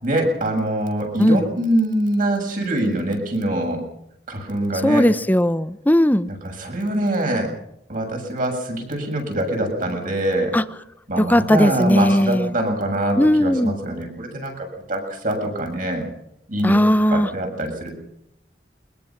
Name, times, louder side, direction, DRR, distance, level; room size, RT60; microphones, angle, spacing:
voice 1, 0.0-3.8 4.3-5.1 6.4-7.5 7.9-10.5 11.1-16.1 16.5-16.8 17.1-17.9, right 1 dB, 50° right, 2 dB, 7.4 m, -24 dB
voice 2, 4.8-6.3 10.5-10.6 11.2-12.5 13.2-13.7 16.6-17.3, equal, 10° left, 14 dB, 0.8 m, -17 dB
23.0 x 21.5 x 6.0 m, 0.78 s
head